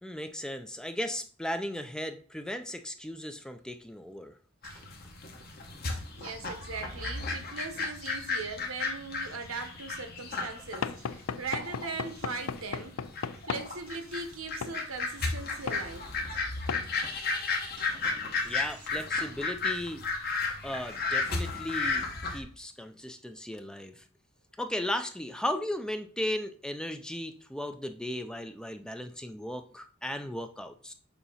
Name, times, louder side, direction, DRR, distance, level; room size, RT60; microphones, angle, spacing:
voice 1, 0.0-4.4 18.4-20.0 20.6-22.0 22.3-24.0 24.6-30.9, left 1 dB, 5° left, 8 dB, 0.3 m, -36 dB
sound 1, 4.6-22.4, left 3 dB, 45° left, 1.1 m, -34 dB
voice 2, 5.9-12.9 13.4-16.1 17.0-17.9 18.4-18.8, right 4 dB, 90° right, 6 dB, 1.1 m, -40 dB
Knock / Wood, 10.8-13.7 14.6-14.8 15.7-15.9 16.7-16.9, left 6 dB, 80° left, 0.4 m, -35 dB
6.9 x 2.8 x 5.5 m, 0.42 s
head